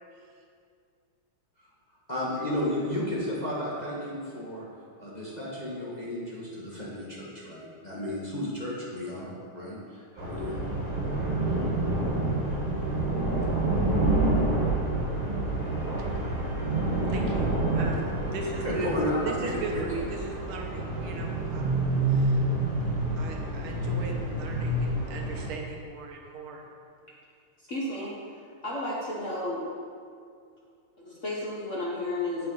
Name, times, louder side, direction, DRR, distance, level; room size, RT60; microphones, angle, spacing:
voice 1, 2.1-4.7 5.0-10.6 18.6-20.1, left 1 dB, 25° left, -7 dB, 1.2 m, -33 dB
sound 1, 10.2-25.5, right 2 dB, 25° right, 1.1 m, -28 dB
sound 2, 15.5-20.7, equal, 80° left, 2.4 m, -40 dB
voice 2, 16.0-21.8 22.1-22.4 23.2-26.7, right 3 dB, 75° right, 1 dB, 1.8 m, -38 dB
voice 3, 27.7-28.1 28.6-29.6 31.0-32.5, left 1 dB, 45° left, -6 dB, 1.2 m, -32 dB
8.6 x 7.0 x 3.9 m, 2.2 s
omnidirectional pair, 2.4 m